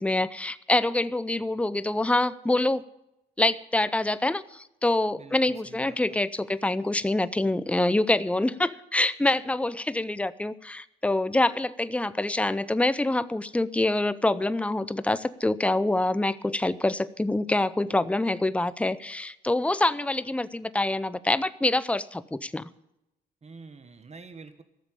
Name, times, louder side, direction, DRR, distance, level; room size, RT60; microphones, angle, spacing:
voice 1, 0.0-2.8 3.4-22.7, left 2 dB, 5° left, 15 dB, 0.6 m, -26 dB
voice 2, 5.1-6.1 23.4-24.6, right 4 dB, 35° right, 9 dB, 1.3 m, -47 dB
13.5 x 7.3 x 9.9 m, 0.88 s
supercardioid pair, 60°, 19 cm